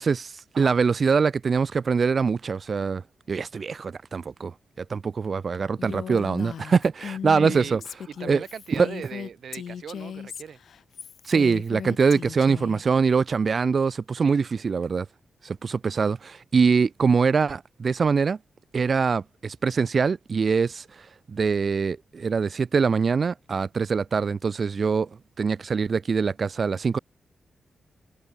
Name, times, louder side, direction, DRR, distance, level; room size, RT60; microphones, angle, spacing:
voice 1, 0.0-3.0 3.3-7.8 8.3-8.4 8.8-8.9 11.2-15.0 15.4-18.4 18.7-25.1 25.4-27.0, right 5 dB, 55° right, 0.9 m, -23 dB
Female speech woman speaking, 5.8-12.8, left 8 dB, 75° left, 3.0 m, -37 dB
voice 2, 7.3-10.6 14.2-14.6, right 7 dB, 75° right, 3.2 m, -39 dB
cardioid pair, 65°, 0 cm